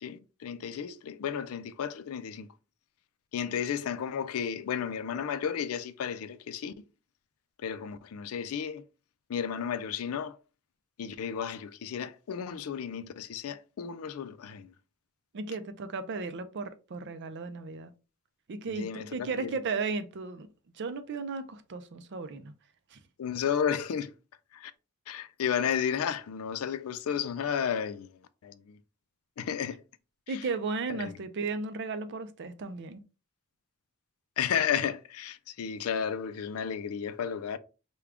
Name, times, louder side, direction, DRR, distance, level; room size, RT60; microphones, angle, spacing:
voice 1, 0.0-2.5 3.3-6.7 7.6-8.8 9.3-10.3 11.0-14.7 18.8-19.5 23.2-24.1 24.5-24.7 25.1-28.1 28.4-28.8 29.4-29.8 31.0-31.1 34.4-37.6, left 8 dB, 80° left, 0.4 m, -33 dB
voice 2, 15.3-17.9 18.5-20.5 20.7-22.5 22.9-23.0 30.3-33.0, right 4 dB, 55° right, 0.4 m, -35 dB
3.5 x 2.2 x 3.5 m
head